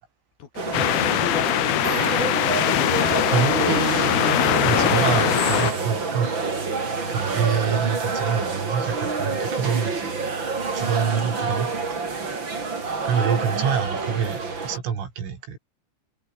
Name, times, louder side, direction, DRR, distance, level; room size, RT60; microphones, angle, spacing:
voice 1, 0.4-3.9 7.0-7.5, left 8 dB, 55° left, 3.7 m, -37 dB
sound 1, 0.6-14.8, right 4 dB, 25° right, 3.7 m, -27 dB
sound 2, 0.7-5.7, left 17 dB, 80° left, 2.3 m, -22 dB
voice 2, 3.3-6.3 7.1-10.1 10.7-12.0 12.7-12.8 13.1-15.6, right 7 dB, 80° right, 7.2 m, -26 dB
omnidirectional pair, 5.7 m